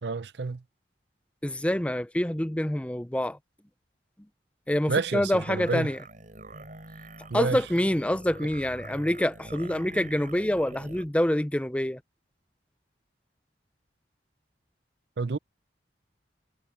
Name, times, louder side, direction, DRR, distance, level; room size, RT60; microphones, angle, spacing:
voice 1, 0.0-0.6 4.9-5.9 7.3-7.6 8.4-8.5 15.2-15.4, right 4 dB, 70° right, 0.6 m, -29 dB
voice 2, 1.4-3.4 4.7-6.0 7.3-12.0, left 1 dB, 5° left, 0.5 m, -26 dB
sound 1, 5.3-11.1, right 2 dB, 45° right, 7.8 m, -45 dB
head